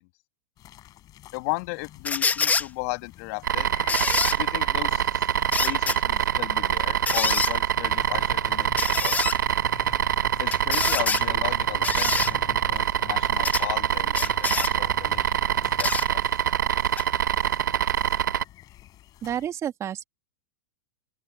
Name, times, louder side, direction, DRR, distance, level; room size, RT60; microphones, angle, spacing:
sound 1, 0.6-19.5, left 14 dB, 35° left, 4.9 m, -47 dB
voice 1, 1.3-3.7 4.4-5.1 5.5-8.7 9.0-9.1 10.4-15.4 15.8-16.2, left 27 dB, 55° left, 1.5 m, -35 dB
sound 2, 2.0-2.7 3.9-4.4 5.5-6.0 7.1-7.5 8.8-9.4 10.5-11.2 11.8-12.3 13.4-13.6 14.1-14.7 15.8-16.1 17.0-17.1, left 5 dB, 15° left, 1.3 m, -26 dB
sound 3, 3.4-18.4, right 9 dB, 80° right, 0.8 m, -25 dB
voice 2, 19.2-20.0, right 10 dB, 30° right, 2.0 m, -30 dB
open air
hypercardioid pair, 105°, 10 cm